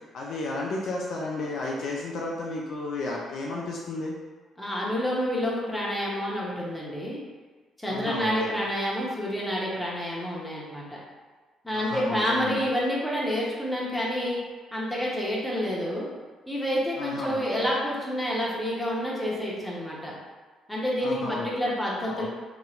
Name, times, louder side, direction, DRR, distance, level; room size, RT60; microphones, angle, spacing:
voice 1, 0.0-4.1 7.9-8.7 11.7-12.6 17.0-17.7 21.0-21.7 22.1-22.3, left 2 dB, 60° left, -2 dB, 0.4 m, -33 dB
voice 2, 4.6-7.2 7.8-11.0 11.6-14.4 14.7-16.1 16.5-20.1 20.7-22.3, equal, 10° left, -5 dB, 1.0 m, -28 dB
3.0 x 2.8 x 2.4 m, 1.4 s
hypercardioid pair, 45°, 0 cm